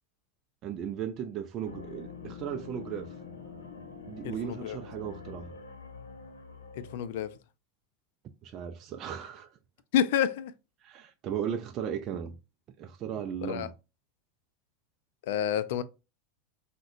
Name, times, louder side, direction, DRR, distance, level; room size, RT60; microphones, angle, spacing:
voice 1, 0.6-3.1 4.1-5.5 8.4-9.6 10.8-12.4 12.8-13.7, right 8 dB, 40° right, 0.3 m, -36 dB
sound 1, 1.7-7.4, left 5 dB, 85° left, 0.8 m, -45 dB
voice 2, 4.2-4.8 6.8-7.3 9.9-10.5 13.4-13.7 15.2-15.8, left 9 dB, 70° left, 0.3 m, -29 dB
3.6 x 2.2 x 2.4 m
hypercardioid pair, 100°, 0 cm